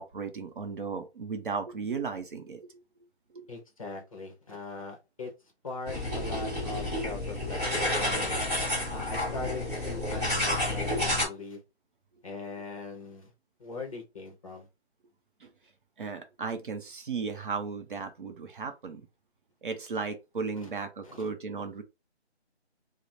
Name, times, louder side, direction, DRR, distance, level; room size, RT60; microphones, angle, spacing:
voice 1, 0.0-2.7 3.3-3.5 15.4-15.5 16.0-19.1 19.6-21.8, right 5 dB, 50° right, 0.6 m, -35 dB
voice 2, 3.5-5.3 5.6-8.4 8.9-11.6 12.2-13.3 13.6-14.7 20.6-20.7 21.0-21.3, left 3 dB, 30° left, 0.7 m, -40 dB
sound 1, 5.9-11.3, left 1 dB, 15° right, 1.2 m, -30 dB
3.0 x 2.0 x 2.6 m
figure-of-eight pair, 160°, 34 cm